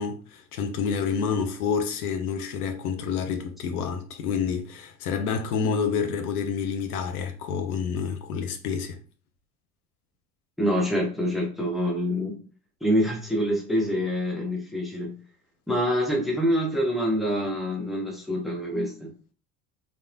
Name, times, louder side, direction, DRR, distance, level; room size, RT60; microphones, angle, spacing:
voice 1, 0.0-9.0, left 6 dB, 85° left, 0.5 m, -28 dB
voice 2, 10.6-12.4 12.8-15.1 15.7-19.1, equal, ahead, 0.8 m, -26 dB
2.9 x 2.0 x 2.5 m
hypercardioid pair, 70°, 43 cm